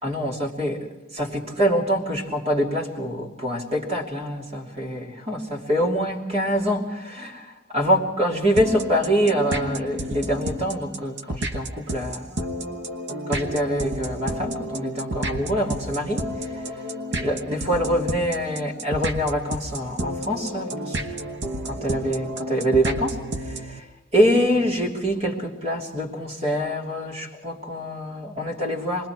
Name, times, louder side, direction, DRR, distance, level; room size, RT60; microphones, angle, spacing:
voice 1, 0.0-12.5 13.3-16.5 17.1-21.0 21.6-23.8 24.1-29.1, equal, 30° right, 0 dB, 3.0 m, -25 dB
sound 1, 8.6-23.8, right 1 dB, 60° right, 1.1 m, -31 dB
27.5 x 21.0 x 4.6 m, 1.0 s
head